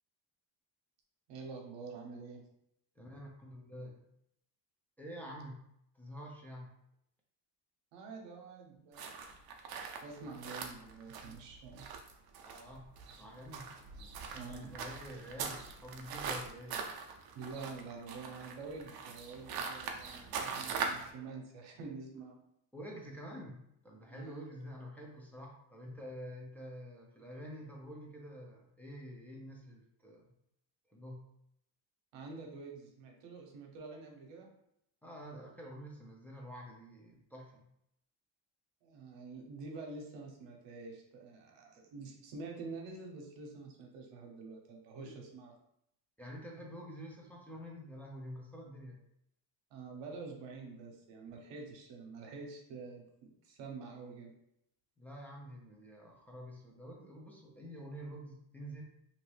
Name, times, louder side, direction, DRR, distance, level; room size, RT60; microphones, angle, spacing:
voice 1, 1.3-2.4 7.9-9.2 10.0-11.9 14.4-14.7 17.3-22.4 24.1-24.5 32.1-34.5 38.8-45.5 49.7-54.3, right 4 dB, 85° right, 1 dB, 0.9 m, -47 dB
voice 2, 3.0-4.0 5.0-5.6 5.9-6.7 12.4-12.9 13.2-16.8 17.6-17.7 22.7-30.3 30.9-31.2 35.0-37.6 45.0-45.2 46.2-49.0 55.0-58.8, equal, 5° left, -2 dB, 0.6 m, -48 dB
sound 1, 8.9-21.1, right 5 dB, 55° right, 0.6 m, -42 dB
2.8 x 2.7 x 3.2 m, 0.76 s
cardioid pair, 105°, 43 cm